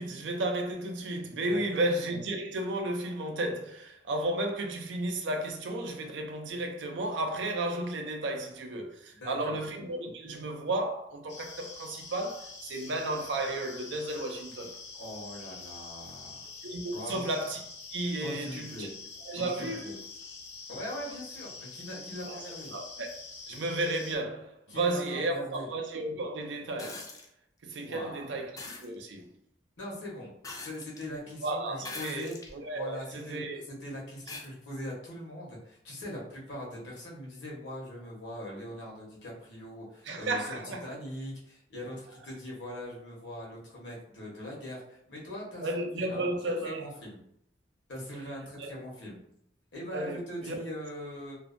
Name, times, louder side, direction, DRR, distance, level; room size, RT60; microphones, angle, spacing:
voice 1, 0.0-14.7 16.6-17.6 17.9-18.9 19.3-20.0 22.3-22.5 22.7-23.2 23.5-27.1 27.6-28.5 28.8-29.3 31.4-33.6 40.1-40.8 45.6-46.8 48.6-48.7 49.9-50.6, right 2 dB, 90° right, 0.5 m, -33 dB
voice 2, 1.5-1.8 9.2-9.6 14.9-16.5 16.9-17.2 18.2-18.9 19.3-19.9 20.7-22.7 24.7-25.7 27.8-28.3 29.8-32.4 32.7-46.2 46.6-47.2 47.9-49.2 49.7-51.4, equal, 85° left, 1.0 m, -41 dB
sound 1, 11.3-24.2, left 4 dB, 70° left, 0.6 m, -46 dB
sound 2, 26.8-27.3 28.6-28.9 30.4-31.1 31.8-32.6 33.2-33.3 34.3-34.5 35.9-36.0, left 3 dB, 20° left, 0.3 m, -42 dB
2.6 x 2.1 x 2.5 m
head